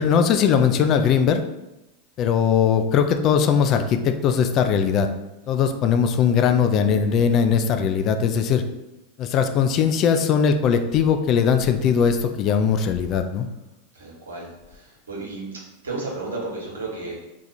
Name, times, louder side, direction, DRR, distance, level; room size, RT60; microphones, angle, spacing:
voice 1, 0.0-1.4 2.2-5.1 5.5-8.6 9.2-13.5, left 7 dB, 45° left, 7 dB, 0.3 m, -20 dB
voice 2, 13.9-15.5 15.8-17.2, right 3 dB, 85° right, -4 dB, 1.1 m, -33 dB
2.9 x 2.4 x 3.9 m, 0.97 s
hypercardioid pair, 95°, 0 cm